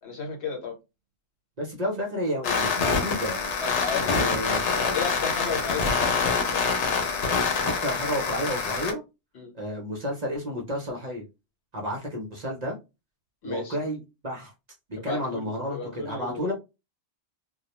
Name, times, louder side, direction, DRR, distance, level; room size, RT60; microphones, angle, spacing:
voice 1, 0.0-0.7 3.6-4.4 4.9-6.6 9.3-9.5 13.4-13.8 15.0-16.5, left 5 dB, 70° left, 1.2 m, -34 dB
voice 2, 1.6-3.4 3.9-5.0 5.5-5.7 7.6-9.0 9.5-11.3 11.7-12.8 13.4-14.5 14.9-16.5, equal, 45° right, 0.6 m, -31 dB
sound 1, 2.4-8.9, left 5 dB, 85° left, 1.0 m, -26 dB
2.3 x 2.0 x 2.8 m
omnidirectional pair, 1.2 m